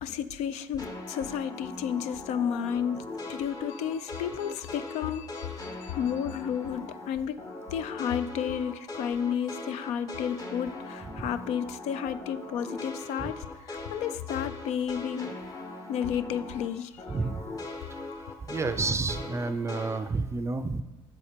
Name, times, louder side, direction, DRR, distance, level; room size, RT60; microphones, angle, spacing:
voice 1, 0.0-7.4 7.7-15.3 15.9-17.1, left 8 dB, 70° left, 13 dB, 0.5 m, -32 dB
sound 1, 0.8-7.1 7.4-16.7 17.0-20.0, left 2 dB, 30° left, 1.2 m, -40 dB
voice 2, 17.1-17.4 18.4-20.8, right 3 dB, 25° right, 10 dB, 0.4 m, -30 dB
7.2 x 4.1 x 5.1 m, 1.2 s
supercardioid pair, 80°, 12 cm